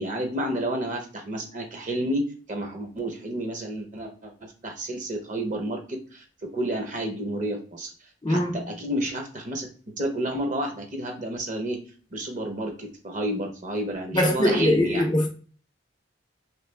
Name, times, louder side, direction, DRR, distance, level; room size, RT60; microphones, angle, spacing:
voice 1, 0.0-7.9 8.3-9.7 10.0-11.8 12.1-15.1, right 1 dB, 40° right, 0.8 m, -30 dB
voice 2, 8.2-8.6 14.1-15.3, left 1 dB, 25° left, 0.4 m, -22 dB
3.3 x 3.2 x 3.3 m
head